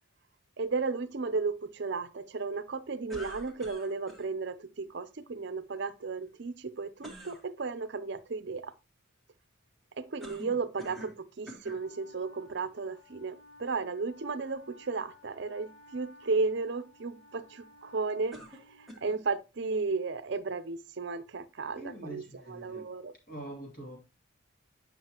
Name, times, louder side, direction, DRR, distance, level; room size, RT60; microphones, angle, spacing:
voice 1, 0.6-8.7 10.0-23.1, right 4 dB, 55° right, 0.6 m, -34 dB
sound 1, 3.1-4.3 7.0-7.4 10.2-11.2 11.5-11.8 12.6-12.7 18.3-19.2, equal, ahead, 1.4 m, -46 dB
Wind instrument woodwind instrument, 11.7-19.2, left 2 dB, 80° left, 1.6 m, -56 dB
voice 2, 21.7-22.9 23.3-24.0, right 1 dB, 45° left, 2.8 m, -44 dB
9.2 x 5.5 x 2.9 m
head